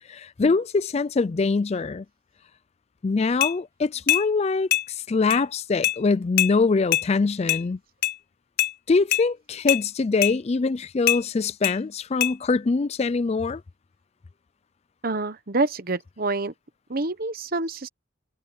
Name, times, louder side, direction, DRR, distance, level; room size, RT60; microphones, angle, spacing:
voice 1, 0.1-2.0 3.0-7.8 8.9-13.6, left 4 dB, 30° left, 0.4 m, -23 dB
sound 1, 3.4-3.5 4.1-4.3 4.7-4.9 5.3-5.4 5.8-6.0 6.4-6.5 6.9-7.1 7.5-7.6 8.0-8.2 8.6-8.7 9.1-9.2 9.7-9.8 10.2-10.4 11.1-11.2 11.6-11.8 12.2-12.3, left 13 dB, 50° left, 0.7 m, -22 dB
voice 2, 15.0-16.5 16.9-17.9, right 3 dB, 45° right, 1.1 m, -27 dB
head